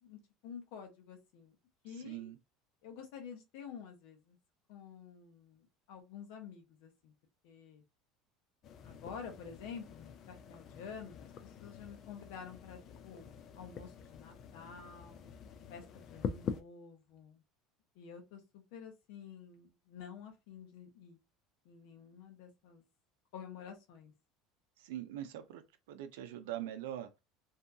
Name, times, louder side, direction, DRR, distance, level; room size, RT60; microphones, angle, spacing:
voice 1, 0.0-1.5 1.8-2.3 2.8-4.4 4.7-7.1 7.4-7.8 8.8-12.8 13.0-15.3 15.7-17.4 18.0-21.2 21.6-22.8 23.3-24.1, left 7 dB, 75° left, 0.9 m, -50 dB
voice 2, 1.9-2.4 24.8-25.6 25.9-27.1, right 12 dB, 90° right, 0.5 m, -42 dB
sound 1, 8.6-16.6, left 6 dB, 45° left, 0.4 m, -45 dB
2.7 x 2.3 x 2.6 m
supercardioid pair, 125°, 0 cm